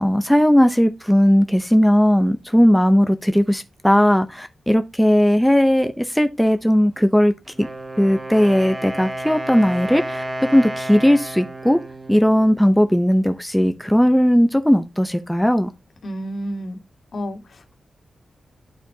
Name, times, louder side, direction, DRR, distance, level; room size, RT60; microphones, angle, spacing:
voice 1, 0.0-7.7 8.0-10.2 10.5-11.8 12.1-15.7, equal, ahead, 0.7 m, -17 dB
Wind instrument woodwind instrument, 7.5-13.2, right 1 dB, 20° right, 1.2 m, -32 dB
voice 2, 16.0-16.8 17.1-17.7, equal, 65° left, 1.9 m, -30 dB
11.5 x 4.4 x 2.8 m
cardioid pair, 70°, 0 cm